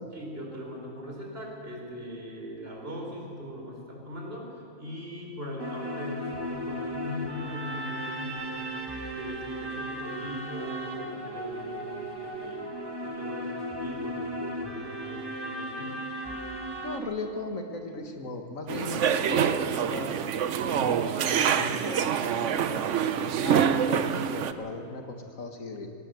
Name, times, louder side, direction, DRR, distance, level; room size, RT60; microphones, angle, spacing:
voice 1, 0.1-8.7 9.2-12.7 13.0-16.0, left 1 dB, 45° right, -1 dB, 4.5 m, -40 dB
sound 1, 5.6-17.0, equal, 20° right, 1.7 m, -36 dB
voice 2, 16.8-20.1 20.7-25.9, left 2 dB, 80° left, 4 dB, 2.2 m, -37 dB
sound 2, 18.7-24.5, right 8 dB, 65° right, 1.0 m, -26 dB
19.0 x 17.5 x 8.0 m, 2.5 s
omnidirectional pair, 1.4 m